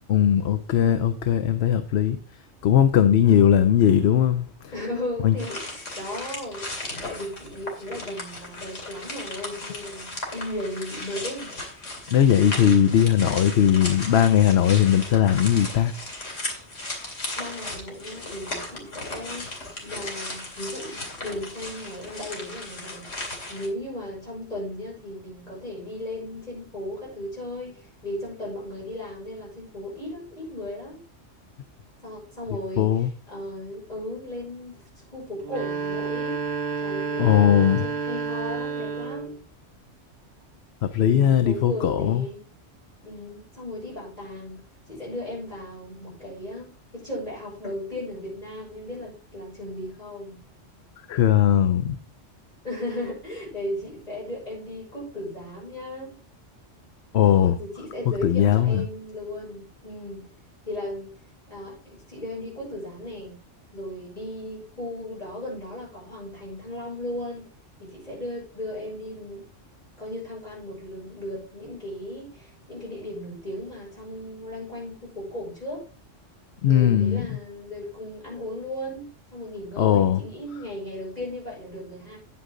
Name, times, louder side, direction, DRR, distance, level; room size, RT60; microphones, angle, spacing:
voice 1, 0.1-2.2 2.6-4.7 5.2-5.4 12.1-15.9 32.8-33.1 37.2-37.9 40.8-42.3 51.1-52.0 57.1-57.6 58.2-58.8 76.6-77.3 79.8-80.2, left 10 dB, 65° left, 0.9 m, -19 dB
voice 2, 3.2-3.7 4.7-6.7 7.0-11.5 17.3-23.1 23.5-31.0 32.0-32.9 33.3-34.8 35.1-36.4 36.8-39.4 41.0-42.4 43.0-44.6 44.9-50.4 52.6-56.2 57.1-60.3 60.6-61.1 61.5-63.4 63.7-67.5 67.8-69.5 70.0-75.8 76.7-82.2, left 1 dB, 35° left, 6.7 m, -36 dB
sound 1, 5.4-23.7, left 2 dB, 80° left, 3.0 m, -36 dB
sound 2, 35.4-39.4, right 5 dB, 60° right, 1.4 m, -30 dB
9.8 x 8.2 x 3.8 m
omnidirectional pair, 1.3 m